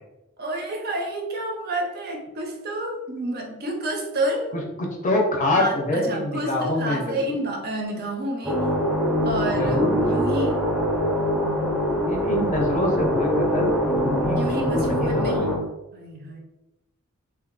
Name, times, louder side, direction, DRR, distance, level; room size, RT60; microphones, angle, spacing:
voice 1, 0.4-4.6 5.5-8.7 9.2-10.7 14.3-15.6 15.9-16.4, right 1 dB, 45° right, 1 dB, 0.6 m, -29 dB
voice 2, 4.5-7.3 9.6-10.0 11.8-15.6, left 1 dB, 35° left, 0 dB, 0.6 m, -26 dB
sound 1, 8.4-15.6, equal, 5° right, 0.7 m, -23 dB
2.7 x 2.4 x 3.8 m, 1.0 s
head